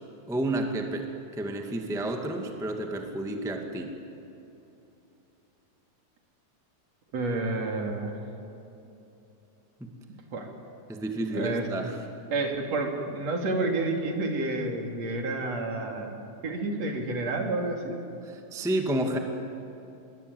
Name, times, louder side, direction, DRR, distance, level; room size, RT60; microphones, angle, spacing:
voice 1, 0.3-4.0 9.8-9.9 10.9-11.9 18.2-19.2, right 1 dB, ahead, 3 dB, 1.4 m, -30 dB
voice 2, 7.1-8.2 10.3-10.5 11.3-11.7 12.3-16.1 16.4-18.0, right 2 dB, 60° right, 2 dB, 3.9 m, -29 dB
25.5 x 23.0 x 9.7 m, 2.9 s
omnidirectional pair, 3.5 m